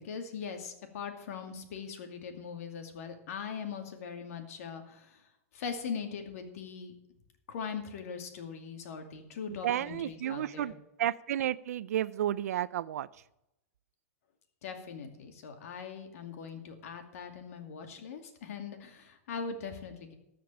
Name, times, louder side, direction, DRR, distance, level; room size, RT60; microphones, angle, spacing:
voice 1, 0.0-5.2 5.5-6.9 7.5-10.8 14.6-20.1, left 6 dB, 70° left, 5 dB, 2.4 m, -41 dB
voice 2, 9.5-10.7 11.0-13.1, right 11 dB, 80° right, 18 dB, 0.4 m, -32 dB
13.5 x 5.2 x 8.7 m, 0.87 s
hypercardioid pair, 135°, 8 cm